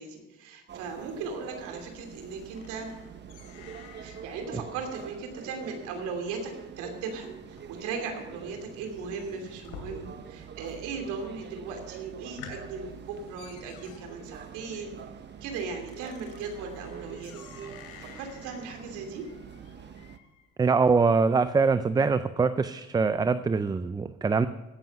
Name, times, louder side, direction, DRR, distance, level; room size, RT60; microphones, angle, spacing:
voice 1, 0.0-2.9 4.0-14.9 15.4-17.3 18.0-19.2, right 4 dB, 80° right, 4 dB, 3.0 m, -37 dB
sound 1, 0.7-20.2, right 7 dB, 35° right, 0.9 m, -45 dB
sound 2, 0.9-10.5 10.7-11.3 11.7-11.8 12.1-20.5, left 6 dB, 75° left, 2.8 m, -52 dB
voice 2, 20.6-24.5, right 4 dB, 15° right, 13 dB, 0.4 m, -23 dB
17.0 x 7.7 x 5.5 m, 1.1 s
cardioid pair, 110°, 30 cm